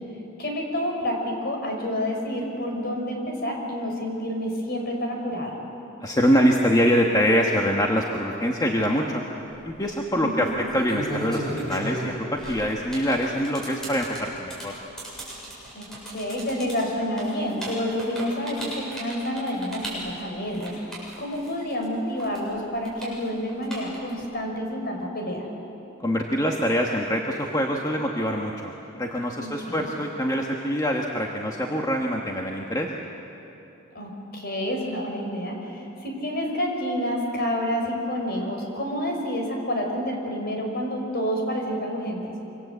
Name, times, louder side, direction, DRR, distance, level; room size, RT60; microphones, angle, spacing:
voice 1, 0.4-5.6 10.2-10.5 15.7-25.5 29.4-29.9 33.9-42.2, equal, 50° left, 2 dB, 5.2 m, -29 dB
voice 2, 6.0-9.2 9.7-14.7 26.0-32.9, equal, 20° left, 0 dB, 1.4 m, -24 dB
sound 1, 9.4-9.7 10.5-21.8 22.2-24.2, right 1 dB, ahead, 7.8 m, -35 dB
26.5 x 25.0 x 8.1 m, 3.0 s
head